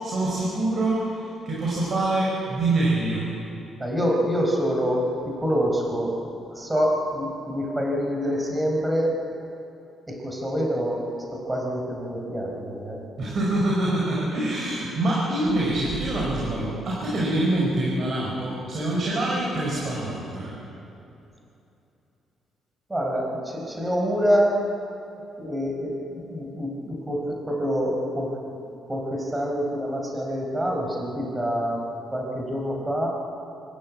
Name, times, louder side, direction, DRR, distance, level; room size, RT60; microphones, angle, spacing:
voice 1, 0.0-3.3 13.2-20.5, right 2 dB, 50° right, -5 dB, 5.4 m, -25 dB
voice 2, 3.8-6.1 6.5-9.2 10.1-11.0 11.3-13.0 22.9-24.6 25.4-28.3 28.9-31.8 32.1-33.1, equal, 15° right, 0 dB, 4.8 m, -26 dB
25.5 x 13.5 x 8.7 m, 2.8 s
cardioid pair, 90°, 0 cm